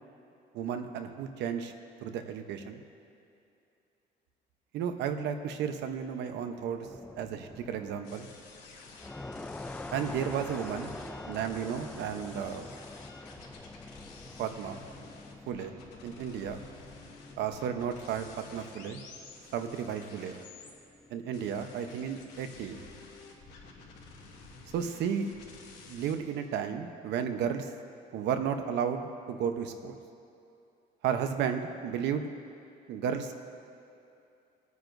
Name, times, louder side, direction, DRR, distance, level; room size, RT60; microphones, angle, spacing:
voice 1, 0.5-1.7 2.0-2.8 4.7-6.9 7.2-8.3 9.9-10.9 11.3-12.7 14.4-14.8 15.5-15.7 16.0-16.6 17.4-19.0 19.5-20.4 21.1-22.8 24.7-25.3 25.9-27.7 28.1-30.0 31.0-32.3 32.9-33.3, right 8 dB, 75° right, 7 dB, 0.9 m, -33 dB
sound 1, 6.8-8.4 8.8-25.2, left 2 dB, 5° left, 0.3 m, -47 dB
sound 2, 8.0-20.7 21.3-26.2, left 4 dB, 75° left, 2.7 m, -51 dB
25.0 x 9.5 x 2.7 m, 2.7 s
cardioid pair, 125°, 18 cm